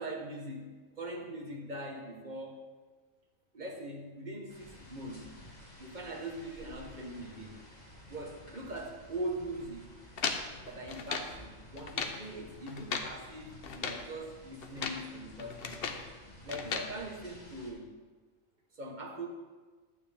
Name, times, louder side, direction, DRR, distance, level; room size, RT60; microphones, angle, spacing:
voice 1, 0.0-2.6 3.5-5.3 5.8-7.6 8.1-10.0 10.7-15.8 16.4-17.9 18.7-19.3, right 1 dB, 35° right, 1 dB, 1.3 m, -41 dB
sound 1, 4.5-17.7, left 1 dB, 35° left, 2.4 m, -53 dB
sound 2, 10.2-11.4 11.8-12.2 12.7-13.2 13.6-14.1 14.6-15.1 15.4-16.1 16.5-16.9, left 5 dB, 55° left, 0.9 m, -36 dB
11.5 x 8.9 x 3.5 m, 1.4 s
omnidirectional pair, 1.3 m